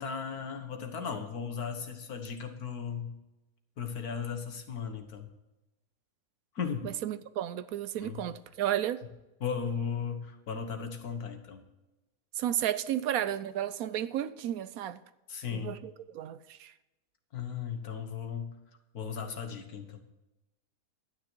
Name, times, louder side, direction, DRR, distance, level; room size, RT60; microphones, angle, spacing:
voice 1, 0.0-3.2 3.8-5.3 6.6-6.9 8.0-8.3 9.4-11.6 15.3-15.8 17.3-18.6 18.9-20.0, left 6 dB, 75° left, 1.8 m, -36 dB
voice 2, 6.8-9.0 12.4-15.0 15.5-16.7, right 11 dB, 75° right, 1.0 m, -33 dB
11.5 x 9.7 x 4.5 m
omnidirectional pair, 1.6 m